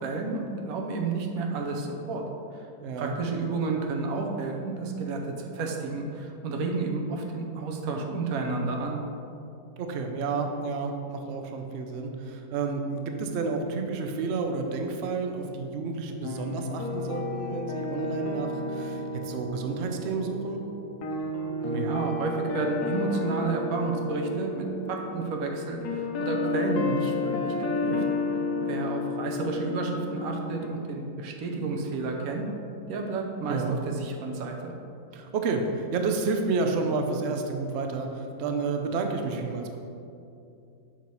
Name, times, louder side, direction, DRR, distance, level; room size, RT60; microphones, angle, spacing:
voice 1, 0.0-2.2 2.5-2.7 3.0-9.0 21.6-28.0 28.6-32.4 32.9-34.7, right 3 dB, 60° right, 2 dB, 1.1 m, -31 dB
voice 2, 2.8-3.2 9.8-20.6 33.5-33.8 35.1-39.8, right 4 dB, 90° right, 4 dB, 0.5 m, -30 dB
sound 1, 16.2-30.7, left 2 dB, 70° left, 1.1 m, -32 dB
7.4 x 3.0 x 5.3 m, 2.6 s
omnidirectional pair, 1.9 m